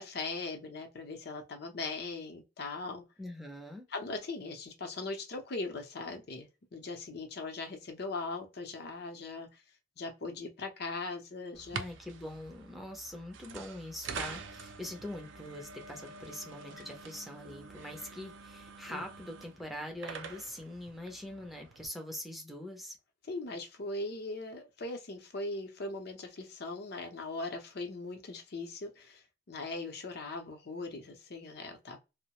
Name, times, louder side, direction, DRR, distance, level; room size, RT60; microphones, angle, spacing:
voice 1, 0.0-3.0 3.9-9.5 10.0-11.8 16.8-16.9 18.9-19.0 23.3-32.0, left 3 dB, 60° left, 0.6 m, -40 dB
voice 2, 3.2-3.9 11.7-23.0, left 1 dB, ahead, 0.5 m, -43 dB
sound 1, 11.5-21.9, right 5 dB, 80° right, 0.4 m, -46 dB
2.3 x 2.0 x 2.8 m
head